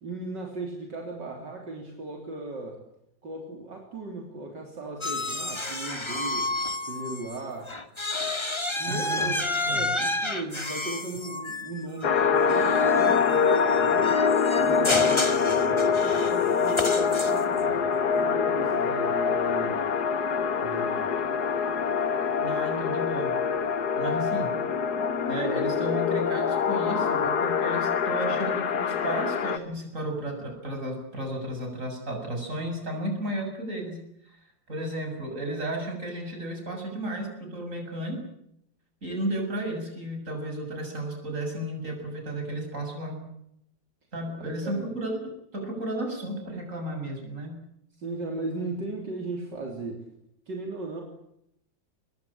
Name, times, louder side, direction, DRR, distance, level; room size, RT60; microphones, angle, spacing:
voice 1, 0.0-2.8 3.2-6.5 6.9-7.7 8.8-14.3 14.5-19.9 20.6-21.1 44.4-44.9 48.0-50.1 50.5-51.0, right 2 dB, 65° right, 1 dB, 4.1 m, -37 dB
sound 1, 5.0-7.4 7.7-17.6, left 2 dB, 15° left, 1.9 m, -31 dB
voice 2, 8.9-9.3 9.7-9.9 22.4-23.4 23.9-24.5 25.3-34.0 34.2-34.4 34.7-38.2 39.0-43.2 44.1-47.5, right 1 dB, 40° right, 2 dB, 7.6 m, -33 dB
sound 2, 12.0-29.6, left 6 dB, 60° left, 1.8 m, -25 dB
24.0 x 21.0 x 8.8 m, 0.77 s
omnidirectional pair, 2.0 m